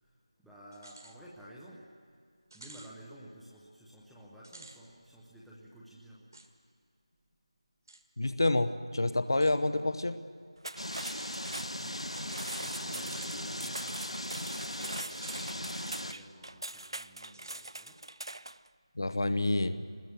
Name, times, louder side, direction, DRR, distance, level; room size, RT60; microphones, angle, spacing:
voice 1, 0.0-2.0 2.5-6.3 11.7-18.0, equal, ahead, -8 dB, 0.7 m, -53 dB
sound 1, 0.7-1.2 1.6-1.7 2.5-2.9 4.4-4.8 6.3-6.5 7.9-8.0 9.3-9.6 11.1-11.4 13.0-13.4 15.1-15.6 16.0-16.1 17.3-17.7, right 2 dB, 40° right, 1.6 m, -51 dB
voice 2, 8.2-10.2 19.0-19.8, left 2 dB, 45° left, 12 dB, 0.9 m, -28 dB
sound 2, 10.6-18.7, right 2 dB, 55° right, 0.5 m, -43 dB
sound 3, 10.8-16.1, left 1 dB, 80° left, 1.3 m, -38 dB
23.5 x 20.5 x 7.0 m, 2.2 s
figure-of-eight pair, 170°, 3 cm